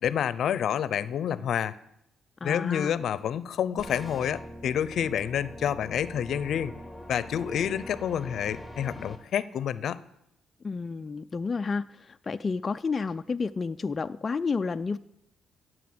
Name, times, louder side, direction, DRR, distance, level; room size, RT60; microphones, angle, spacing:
voice 1, 0.0-1.8 2.4-6.7 7.1-10.0, left 9 dB, 70° left, 17 dB, 0.7 m, -28 dB
voice 2, 2.4-3.0 10.6-15.0, left 4 dB, 35° left, 8 dB, 0.4 m, -31 dB
sound 1, 3.8-9.2, equal, ahead, 2.6 m, -43 dB
16.0 x 7.8 x 7.8 m, 0.80 s
cardioid pair, 80°, 0 cm